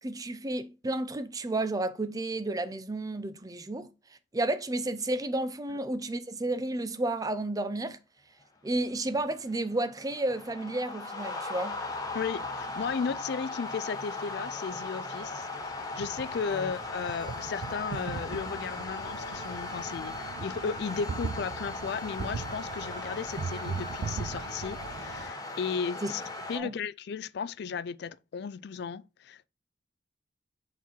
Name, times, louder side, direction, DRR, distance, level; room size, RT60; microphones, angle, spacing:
voice 1, 0.0-3.9 4.3-8.0 8.6-11.8 16.5-16.7 26.0-26.1 26.5-26.7, right 2 dB, 20° right, 0.5 m, -32 dB
sound 1, 8.6-26.6, left 2 dB, 20° left, 1.1 m, -38 dB
voice 2, 12.1-15.5 16.0-26.2 26.5-29.5, left 6 dB, 60° left, 0.4 m, -35 dB
sound 2, 15.3-25.3, right 5 dB, 85° right, 0.4 m, -40 dB
5.9 x 4.4 x 4.3 m
head